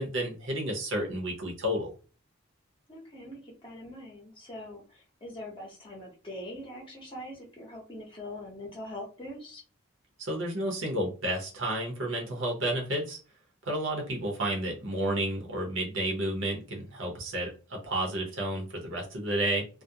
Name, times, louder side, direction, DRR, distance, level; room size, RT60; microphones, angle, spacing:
voice 1, 0.0-1.9 10.2-13.2 13.6-19.7, right 1 dB, 60° right, 0 dB, 0.8 m, -31 dB
voice 2, 2.9-9.6, left 1 dB, 25° left, -2 dB, 0.7 m, -43 dB
2.3 x 2.0 x 2.7 m, 0.36 s
head